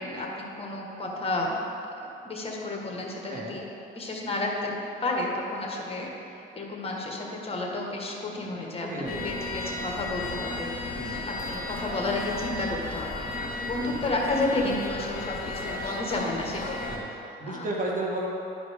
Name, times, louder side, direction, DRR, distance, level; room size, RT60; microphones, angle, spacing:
voice 1, 0.0-1.6 2.2-3.6 3.9-6.1 6.3-10.7 11.3-13.3 13.6-17.7, left 2 dB, 30° left, -1 dB, 1.4 m, -31 dB
voice 2, 8.9-9.4 10.9-11.3 13.8-14.0 16.9-17.1 17.4-18.3, right 2 dB, 40° right, -4 dB, 1.8 m, -33 dB
sound 1, 9.1-17.0, left 2 dB, 50° left, 1.3 m, -34 dB
11.5 x 4.9 x 3.6 m, 2.9 s
cardioid pair, 90°, 20 cm